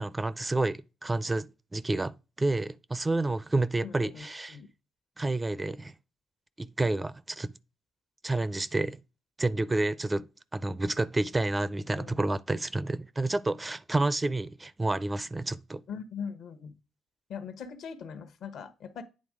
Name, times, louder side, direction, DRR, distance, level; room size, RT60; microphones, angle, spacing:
voice 1, 0.0-4.6 5.2-5.9 6.6-7.5 8.2-9.0 9.4-10.3 10.5-15.8, right 2 dB, 20° right, 0.4 m, -29 dB
voice 2, 3.8-4.7 12.0-12.2 15.9-16.7 17.3-19.0, left 6 dB, 70° left, 1.0 m, -41 dB
8.6 x 3.6 x 4.9 m
cardioid pair, 90°, 0 cm